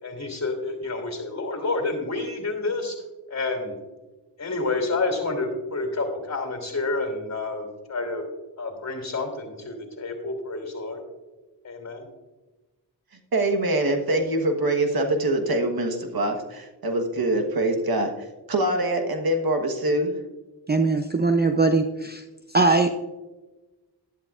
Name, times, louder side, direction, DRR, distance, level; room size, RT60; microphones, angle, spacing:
voice 1, 0.0-3.0 3.3-3.8 4.4-8.2 8.6-11.0 11.6-12.1, left 3 dB, 40° left, 4 dB, 2.9 m, -29 dB
voice 2, 13.3-18.1 18.5-20.2, right 1 dB, 55° right, 5 dB, 1.4 m, -24 dB
voice 3, 20.7-22.2 22.5-22.9, right 3 dB, 25° right, 7 dB, 0.6 m, -20 dB
11.5 x 11.0 x 2.5 m, 1.2 s
cardioid pair, 60°, 42 cm